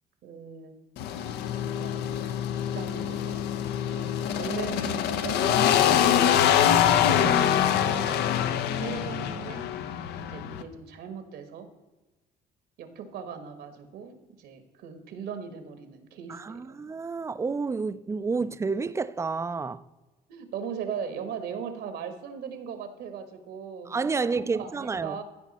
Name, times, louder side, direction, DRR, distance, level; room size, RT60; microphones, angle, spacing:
voice 1, 0.2-0.7 1.6-2.5 2.7-3.6 3.9-8.4 8.8-9.7 10.2-11.7 12.8-16.8 20.3-25.2, right 7 dB, 75° right, 1.5 m, -39 dB
sound 1, 1.0-10.6, left 10 dB, 80° left, 0.7 m, -25 dB
voice 2, 16.3-19.8 23.9-25.2, right 4 dB, 15° right, 0.4 m, -30 dB
15.0 x 5.2 x 4.1 m
cardioid pair, 110°, 17 cm